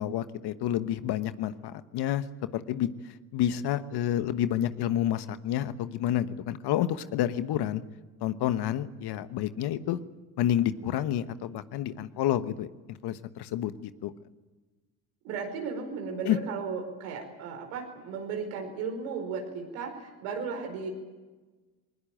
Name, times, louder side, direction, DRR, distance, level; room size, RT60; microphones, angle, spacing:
voice 1, 0.0-2.2 2.5-2.9 3.3-7.8 8.2-10.0 10.4-14.1 16.2-16.4, left 11 dB, 60° left, 12 dB, 1.3 m, -29 dB
voice 2, 15.2-20.9, right 5 dB, 80° right, 4 dB, 5.0 m, -35 dB
21.0 x 20.0 x 9.1 m, 1.3 s
hypercardioid pair, 60°, 43 cm